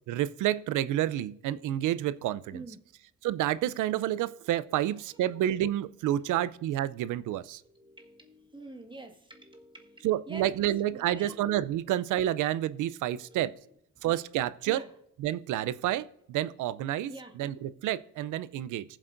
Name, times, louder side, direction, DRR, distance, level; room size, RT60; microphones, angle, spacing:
voice 1, 0.1-2.6 3.2-7.6 10.0-13.5 14.0-14.8 15.2-17.1 17.4-18.8, right 12 dB, 80° right, 17 dB, 0.6 m, -29 dB
voice 2, 2.5-2.9 4.8-5.6 7.6-11.5 13.1-13.4 14.0-14.1 14.7-14.9 17.1-17.4, right 2 dB, 15° right, 4 dB, 1.6 m, -48 dB
19.5 x 7.5 x 2.6 m, 0.77 s
cardioid pair, 90°, 30 cm